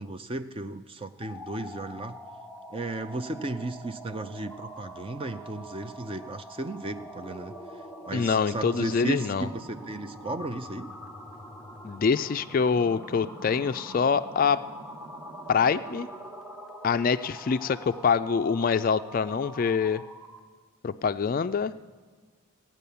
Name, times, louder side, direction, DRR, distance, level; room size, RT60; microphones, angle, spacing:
voice 1, 0.0-2.2 2.7-7.5 8.1-10.9, right 2 dB, 25° right, 9 dB, 0.5 m, -35 dB
sound 1, 1.2-20.5, equal, ahead, 0.9 m, -44 dB
voice 2, 8.1-9.5 11.8-14.6 15.5-16.1 16.8-20.0 20.8-21.8, left 6 dB, 40° left, 12 dB, 0.3 m, -25 dB
16.0 x 9.2 x 6.9 m, 1.5 s
head